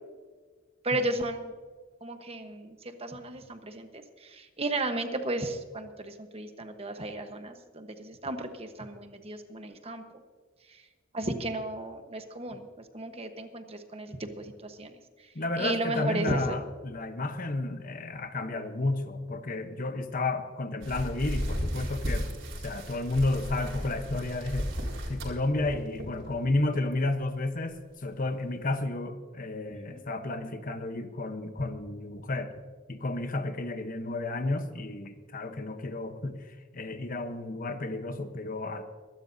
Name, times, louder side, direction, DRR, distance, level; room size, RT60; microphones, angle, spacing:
voice 1, 0.8-1.5 2.0-10.0 10.7-10.8 11.1-12.7 12.9-14.9 15.6-16.6 29.9-30.0, right 2 dB, 30° right, 7 dB, 1.1 m, -34 dB
voice 2, 15.3-22.3 22.6-24.7 25.1-32.5 32.9-38.8, left 2 dB, 45° left, 8 dB, 1.0 m, -32 dB
sound 1, 20.8-26.5 26.9-27.2 27.7-27.8 28.3-28.4, equal, 70° right, 4.6 m, -34 dB
23.5 x 12.5 x 2.7 m, 1.5 s
head